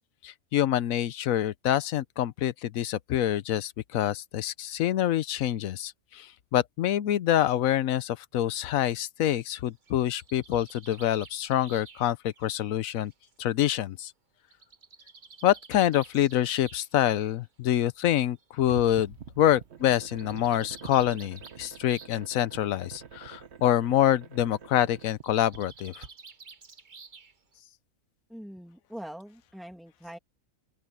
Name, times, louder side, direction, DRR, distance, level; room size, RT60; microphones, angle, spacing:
voice 1, 0.2-13.1 13.4-14.1 15.4-26.0, left 12 dB, 75° left, 1.1 m, -26 dB
Bird, 9.6-13.4 14.5-16.9 17.9-18.0 18.4-18.5 18.7-18.8 19.9-22.3 22.6-23.0 25.1-27.6, right 4 dB, 35° right, 1.2 m, -51 dB
sound 1, 18.6-26.1, right 7 dB, 55° right, 1.2 m, -46 dB
voice 2, 28.3-30.2, equal, ahead, 2.3 m, -43 dB
open air
omnidirectional pair, 1.5 m